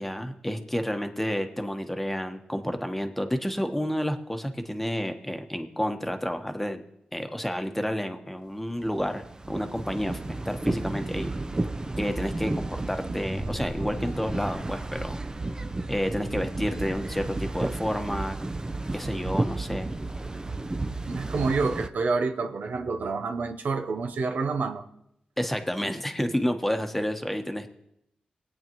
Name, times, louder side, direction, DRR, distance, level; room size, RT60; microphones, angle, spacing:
voice 1, 0.0-6.8 7.1-11.3 12.0-15.2 15.9-18.4 18.9-19.9 25.4-27.7, equal, 5° left, 1.1 m, -30 dB
sound 1, 8.8-21.9, right 2 dB, 25° right, 0.7 m, -32 dB
voice 2, 21.1-24.8, right 4 dB, 70° right, 0.8 m, -28 dB
19.5 x 8.8 x 3.1 m
cardioid pair, 60°, 3 cm